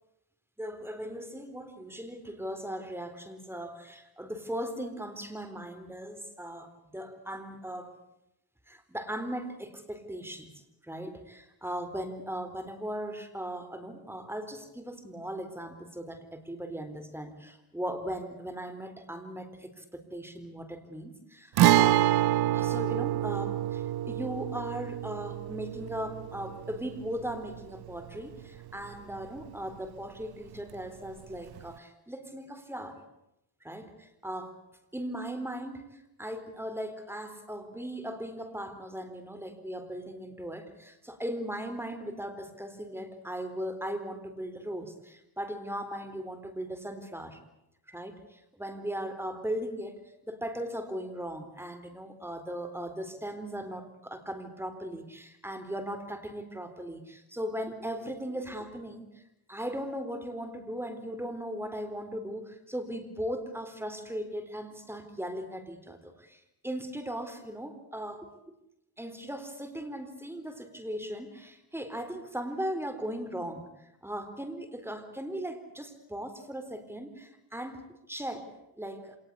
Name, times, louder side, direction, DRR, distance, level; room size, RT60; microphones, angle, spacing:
voice 1, 0.6-8.0 8.7-10.5 10.8-22.1 22.5-33.0 33.6-34.6 34.9-47.4 47.9-59.1 59.5-68.5 69.0-79.2, equal, 5° right, 9 dB, 3.9 m, -38 dB
Guitar, 21.6-29.2 29.5-29.6 31.6-31.7, right 13 dB, 80° right, 0.8 m, -27 dB
27.0 x 19.5 x 8.5 m, 0.88 s
cardioid pair, 100°, 37 cm